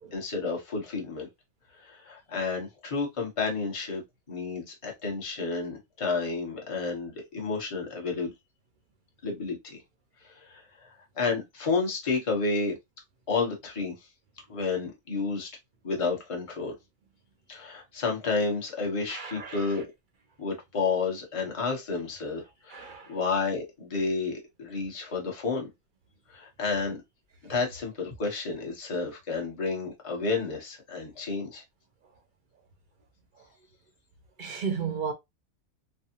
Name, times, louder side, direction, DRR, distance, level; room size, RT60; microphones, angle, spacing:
voice 1, 0.1-1.3 1.8-4.0 4.3-8.3 9.2-9.8 10.2-12.7 13.3-13.9 14.5-15.5 15.8-16.7 17.5-19.9 20.4-25.7 26.3-27.0 27.4-31.6, left 4 dB, 25° left, 0.9 m, -31 dB
voice 2, 19.1-19.8 22.7-23.2 34.4-35.1, right 6 dB, 45° right, 0.7 m, -34 dB
3.3 x 2.0 x 2.7 m
omnidirectional pair, 1.5 m